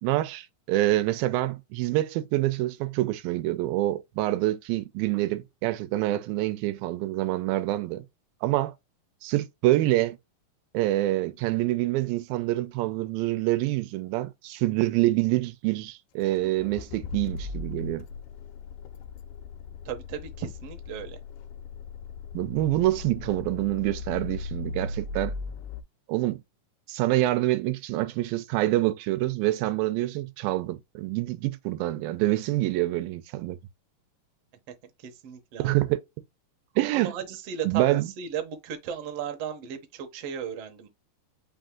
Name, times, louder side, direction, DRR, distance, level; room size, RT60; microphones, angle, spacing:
voice 1, 0.0-8.0 8.4-8.7 9.2-10.2 10.7-18.0 22.3-25.3 26.1-26.4 26.9-33.6 35.6-36.0 36.8-37.1 37.7-38.1, right 16 dB, 90° right, 2.4 m, -26 dB
Accelerating revving vroom, 16.2-25.8, left 3 dB, 80° left, 2.0 m, -38 dB
voice 2, 19.8-21.2 35.0-35.8 36.9-37.8 38.2-40.9, right 8 dB, 70° right, 1.5 m, -35 dB
5.4 x 2.5 x 3.6 m
omnidirectional pair, 4.0 m